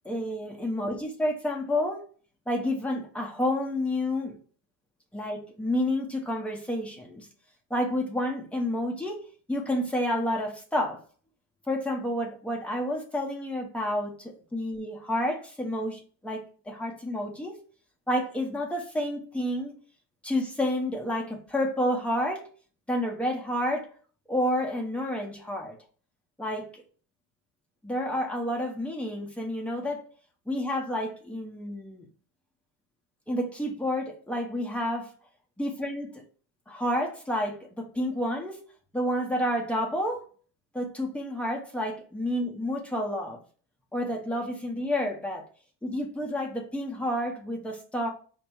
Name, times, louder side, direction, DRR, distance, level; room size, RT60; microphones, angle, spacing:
voice 1, 0.0-2.0 2.5-4.4 5.1-7.3 7.7-9.2 9.5-11.0 11.7-17.6 18.1-19.8 20.2-22.5 22.9-23.9 24.3-25.8 26.4-26.8 27.8-30.0 30.5-32.1 33.3-35.1 35.6-36.2 36.7-38.6 38.9-40.3 40.7-43.4 43.9-45.4 45.8-48.1, left 1 dB, 5° left, 0.6 m, -30 dB
5.2 x 2.1 x 4.4 m
cardioid pair, 140°, 43 cm